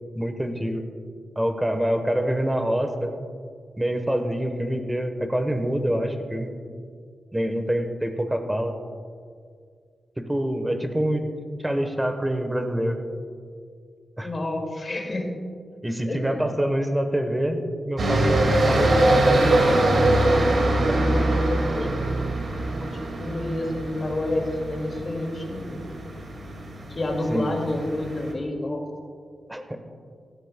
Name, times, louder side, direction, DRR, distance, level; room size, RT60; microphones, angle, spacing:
voice 1, 0.1-0.8 1.4-3.1 3.8-6.5 7.3-8.7 10.2-11.2 11.6-13.0 14.2-14.3 15.8-19.6 20.9-21.0 27.3-27.5 29.5-29.8, equal, 10° right, 6 dB, 1.0 m, -26 dB
voice 2, 14.2-15.3 16.1-16.5 20.4-22.2 22.8-25.8 26.9-28.9, left 1 dB, 35° left, 1 dB, 2.1 m, -29 dB
sound 1, 18.0-28.3, right 1 dB, 55° right, 2.0 m, -23 dB
17.0 x 13.0 x 2.2 m, 2.2 s
wide cardioid pair, 110°, 0 cm